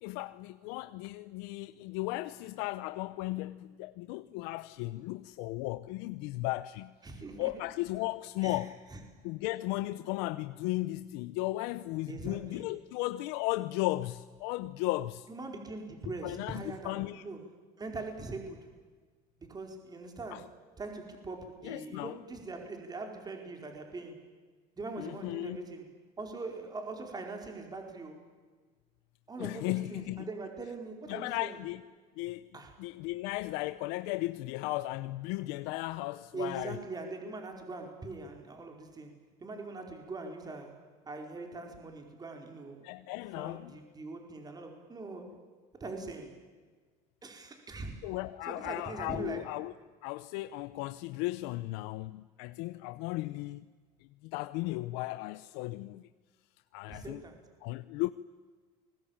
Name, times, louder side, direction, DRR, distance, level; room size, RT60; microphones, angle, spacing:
voice 1, 0.0-6.9 7.4-8.8 9.2-15.3 16.2-17.2 20.3-20.4 21.6-22.2 25.0-25.6 29.4-30.3 31.1-31.8 32.2-32.5 32.8-36.8 42.8-43.7 48.0-49.7 50.0-53.7 54.2-56.1 56.7-57.2 57.6-58.1, left 18 dB, 80° left, 0.8 m, -35 dB
voice 2, 7.0-7.5 8.4-8.6 8.9-9.0 12.1-12.7 15.3-17.5 17.8-18.7 19.4-24.2 24.8-25.9 26.2-28.3 29.3-31.6 32.5-32.7 36.3-42.9 43.4-45.4 45.7-46.4 47.2-48.1 48.5-49.5 56.9-57.4, right 3 dB, 25° right, 4.7 m, -42 dB
29.5 x 22.0 x 8.9 m
supercardioid pair, 110°, 17 cm